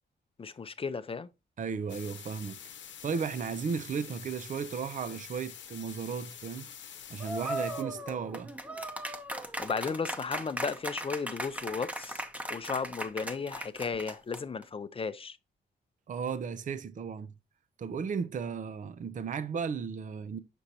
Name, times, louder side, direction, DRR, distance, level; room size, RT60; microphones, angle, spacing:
voice 1, 0.4-1.3 9.6-12.2 12.5-15.4, left 5 dB, 30° left, 0.5 m, -34 dB
voice 2, 1.6-2.6 3.0-6.7 7.1-8.5 16.1-17.3 17.8-20.4, right 6 dB, 45° right, 0.5 m, -35 dB
sound 1, 1.9-7.8, left 9 dB, 80° left, 0.9 m, -47 dB
sound 2, 7.2-14.6, right 1 dB, 5° right, 0.8 m, -38 dB
6.6 x 6.1 x 2.7 m
wide cardioid pair, 125°, 19 cm